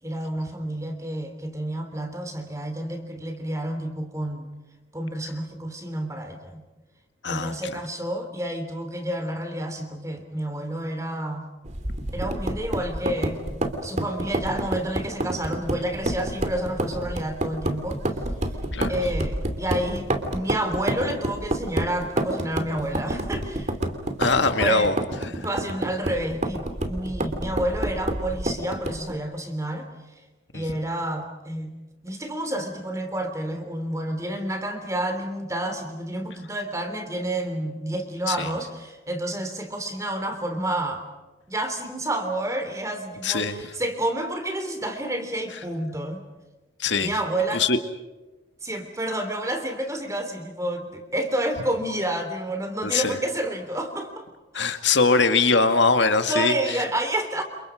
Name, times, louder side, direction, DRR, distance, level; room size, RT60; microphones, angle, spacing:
voice 1, 0.0-4.5 4.9-6.6 7.3-11.5 12.1-13.4 13.8-18.0 18.9-23.7 24.6-24.9 25.4-29.9 30.5-31.7 32.0-41.0 41.5-46.2 47.0-47.6 48.6-54.2 54.5-54.8 56.3-57.4, right 1 dB, 15° right, 6 dB, 3.4 m, -29 dB
voice 2, 7.2-7.6 18.7-18.9 24.2-24.9 25.4-25.5 30.5-30.6 38.3-38.5 43.2-43.6 46.8-47.1 47.5-47.8 52.8-53.1 54.5-56.8, left 4 dB, 70° left, 8 dB, 2.1 m, -22 dB
sound 1, 11.6-29.1, right 1 dB, 35° right, 2.8 m, -29 dB
30.0 x 29.0 x 5.1 m, 1.1 s
head